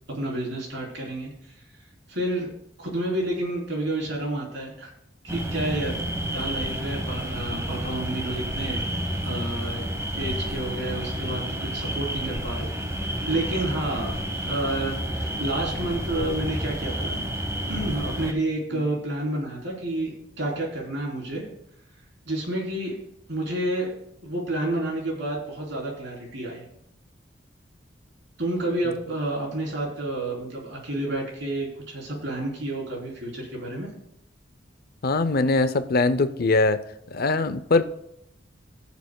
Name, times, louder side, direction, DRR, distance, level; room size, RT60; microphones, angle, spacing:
voice 1, 0.1-1.3 2.1-2.5 2.8-4.9 5.2-6.0 6.3-8.8 9.2-12.7 13.0-17.2 17.7-21.4 22.3-23.0 23.3-23.9 24.2-26.7 28.4-33.9, right 1 dB, 70° right, -2 dB, 3.5 m, -30 dB
sound 1, 5.3-18.3, equal, 15° right, 1.1 m, -30 dB
voice 2, 35.0-36.8 37.1-37.9, left 3 dB, 55° left, 12 dB, 0.6 m, -22 dB
20.5 x 7.3 x 2.3 m, 0.78 s
head